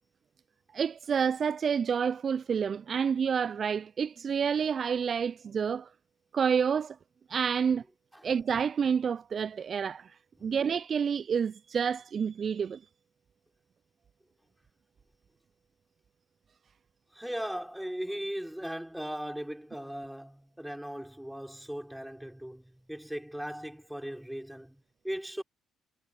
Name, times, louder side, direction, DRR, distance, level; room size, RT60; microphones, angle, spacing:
voice 1, 0.7-5.9 6.3-7.0 7.3-7.8 8.2-10.2 10.4-12.8, right 7 dB, 45° right, 0.6 m, -29 dB
voice 2, 17.1-25.4, equal, 5° right, 6.2 m, -38 dB
hypercardioid pair, 50°, 0 cm